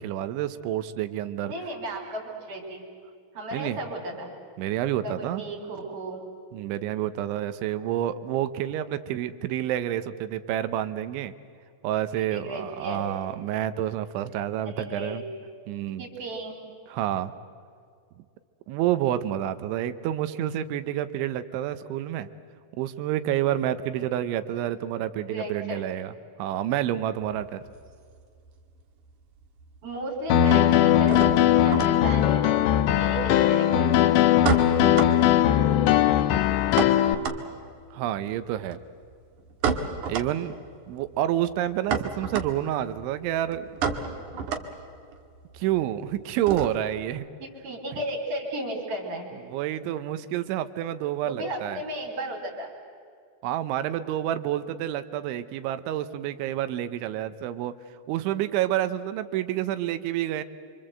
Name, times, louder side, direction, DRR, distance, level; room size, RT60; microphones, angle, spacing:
voice 1, 0.0-1.5 3.5-3.8 4.6-5.4 6.5-11.3 11.8-15.2 15.7-16.1 16.9-17.3 18.7-22.3 22.8-26.1 26.4-27.6 37.9-38.8 40.1-40.6 40.9-43.7 45.5-47.3 47.9-48.0 49.4-51.8 53.4-57.8 58.1-60.4, right 12 dB, 80° right, 12 dB, 3.1 m, -29 dB
voice 2, 1.5-2.9 3.3-4.3 5.0-6.2 12.1-13.0 14.7-15.2 16.0-16.6 24.5-24.6 25.3-25.9 29.8-31.2 31.6-32.6 32.9-33.9 47.4-49.3 51.2-52.7, right 1 dB, 45° right, -2 dB, 4.6 m, -34 dB
sound 1, 27.2-28.8 29.1-29.8 30.0-47.0, right 5 dB, 60° right, 2.2 m, -33 dB
Piano, 30.3-37.2, left 11 dB, 80° left, 3.5 m, -20 dB
28.5 x 24.5 x 7.8 m, 2.2 s
omnidirectional pair, 5.7 m